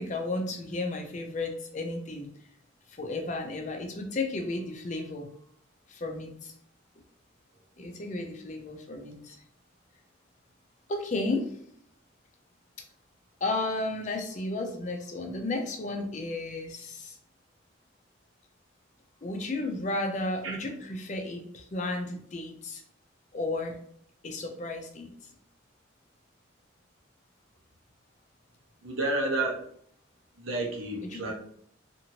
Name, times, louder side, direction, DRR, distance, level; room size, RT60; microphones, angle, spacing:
voice 1, 0.0-2.3 2.9-5.3 5.9-6.5 7.8-9.4 10.9-11.5 13.4-17.2 19.2-22.8 23.3-23.8 24.2-25.1 31.0-31.3, left 2 dB, 40° left, 3 dB, 0.5 m, -33 dB
voice 2, 28.8-29.6 30.4-31.3, right 2 dB, 85° right, -1 dB, 0.8 m, -30 dB
2.8 x 2.5 x 2.9 m, 0.65 s
head